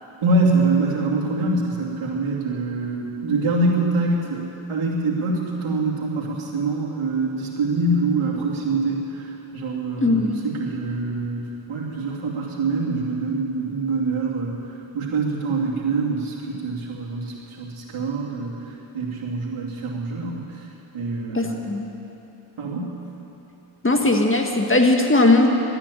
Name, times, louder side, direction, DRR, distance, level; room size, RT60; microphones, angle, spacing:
voice 1, 0.2-20.7 20.9-21.6 22.6-23.0, right 3 dB, 80° right, -4 dB, 2.9 m, -25 dB
voice 2, 10.0-10.5 21.3-21.9 23.8-25.5, left 2 dB, 25° left, 2 dB, 1.8 m, -18 dB
13.0 x 10.0 x 9.9 m, 3.0 s
cardioid pair, 60°, 49 cm